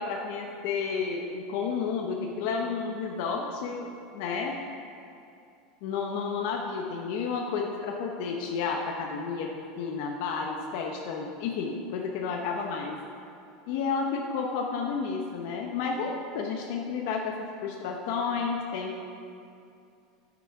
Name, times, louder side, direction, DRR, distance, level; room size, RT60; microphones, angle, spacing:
voice 1, 0.0-4.6 5.8-13.0 13.7-19.0, left 5 dB, 55° left, 1 dB, 0.9 m, -31 dB
11.0 x 8.3 x 4.7 m, 2.5 s
supercardioid pair, 175°, 0 cm